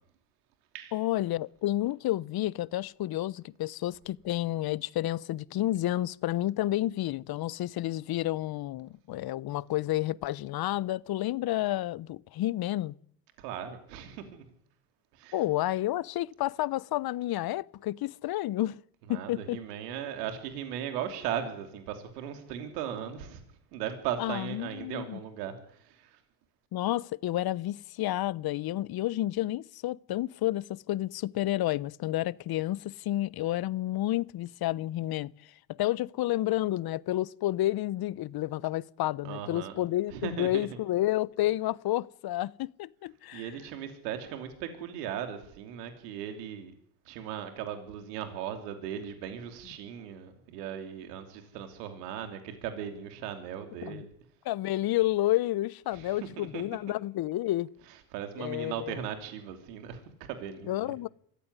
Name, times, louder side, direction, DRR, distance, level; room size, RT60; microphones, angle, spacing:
voice 1, 0.9-12.9 15.3-18.8 19.1-19.6 24.2-25.2 26.7-43.5 53.8-54.0 54.4-57.7 58.4-59.0 60.7-61.1, left 15 dB, 50° left, 1.0 m, -30 dB
voice 2, 13.4-14.4 15.1-15.4 19.1-23.4 23.7-26.2 39.2-39.8 40.1-40.7 43.3-46.7 47.0-54.1 55.9-56.6 58.1-60.9, right 9 dB, 85° right, 3.2 m, -38 dB
24.0 x 15.5 x 9.8 m
supercardioid pair, 80°, 47 cm